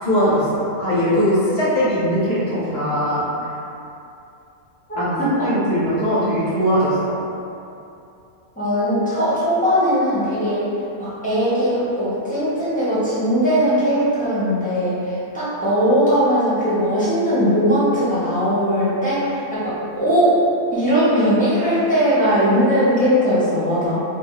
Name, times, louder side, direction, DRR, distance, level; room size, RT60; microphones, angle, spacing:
voice 1, 0.0-3.5 4.9-7.2, equal, 55° left, -9 dB, 1.1 m, -20 dB
voice 2, 4.9-5.5 8.6-10.6 11.0-20.4 20.7-24.0, equal, 5° left, -13 dB, 1.0 m, -19 dB
2.6 x 2.6 x 3.7 m, 2.7 s
omnidirectional pair, 1.4 m